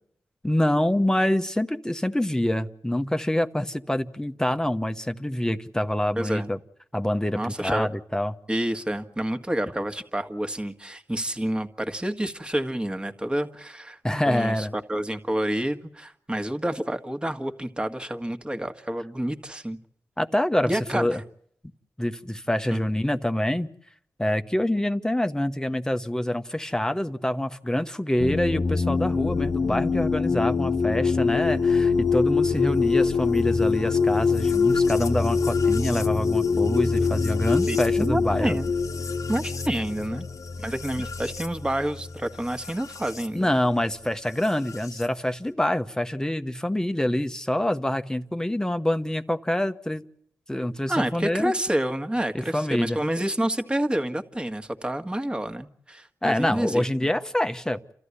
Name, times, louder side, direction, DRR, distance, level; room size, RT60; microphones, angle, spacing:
voice 1, 0.4-6.6 6.9-8.3 14.0-14.7 20.2-21.2 22.0-23.7 24.2-38.6 43.3-50.0 50.5-51.5 52.3-53.0 56.2-57.9, left 1 dB, 10° left, 8 dB, 1.1 m, -26 dB
voice 2, 6.2-6.5 7.4-7.9 8.5-14.0 14.3-19.8 20.7-21.1 22.7-22.8 37.7-38.7 39.3-40.3 40.6-43.5 50.9-56.8, right 1 dB, 15° right, 7 dB, 1.7 m, -28 dB
sound 1, 28.2-43.3 44.4-45.1, left 5 dB, 65° left, 1.2 m, -24 dB
29.0 x 14.0 x 9.8 m, 0.68 s
cardioid pair, 65°, 6 cm